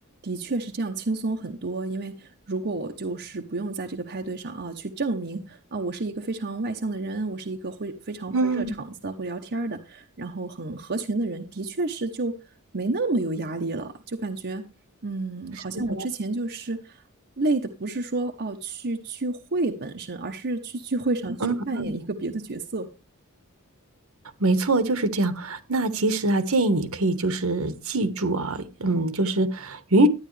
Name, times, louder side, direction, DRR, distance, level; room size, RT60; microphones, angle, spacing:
voice 1, 0.2-8.6 9.0-12.4 12.7-14.6 15.0-17.0 17.4-22.9, right 2 dB, 50° right, 1.0 m, -30 dB
voice 2, 8.3-8.7 15.9-16.1 21.4-21.9 24.4-30.1, right 2 dB, 70° right, 1.4 m, -24 dB
12.0 x 9.8 x 3.3 m
head